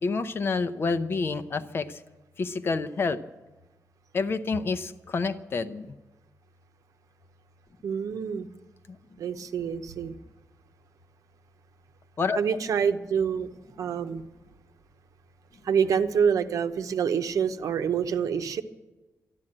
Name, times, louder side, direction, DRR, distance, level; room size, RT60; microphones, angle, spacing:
voice 1, 0.0-2.0 2.4-3.2 4.1-5.9 8.9-9.0 12.2-12.4, left 4 dB, 40° left, 11 dB, 0.7 m, -28 dB
voice 2, 7.8-8.5 9.2-10.1 12.3-13.5 13.8-14.2 15.6-18.6, right 7 dB, 75° right, 9 dB, 0.9 m, -26 dB
13.5 x 12.0 x 8.8 m, 1.1 s
wide cardioid pair, 160°, 6 cm